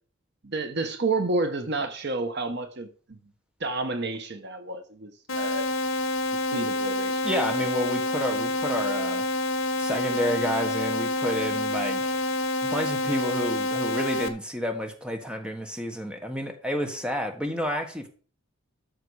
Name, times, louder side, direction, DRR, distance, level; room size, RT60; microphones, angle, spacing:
voice 1, 0.4-3.2 3.6-5.7 6.5-7.2, right 3 dB, 50° right, 1.1 m, -30 dB
sound 1, 5.3-14.3, left 2 dB, 70° left, 1.4 m, -27 dB
voice 2, 7.2-9.3 9.8-12.2 12.6-18.1, equal, 5° right, 1.4 m, -30 dB
12.5 x 6.7 x 4.9 m
head